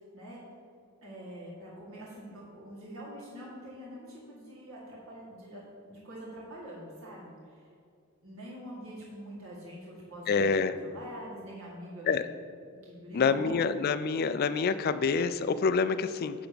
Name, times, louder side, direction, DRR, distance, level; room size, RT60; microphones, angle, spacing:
voice 1, 1.0-7.6 8.2-10.5 10.8-12.3 12.8-13.7, right 1 dB, 65° right, -6 dB, 2.1 m, -45 dB
voice 2, 10.3-10.8 12.1-12.2 13.1-16.5, left 5 dB, 45° left, 12 dB, 0.3 m, -27 dB
9.9 x 3.5 x 6.9 m, 2.4 s
head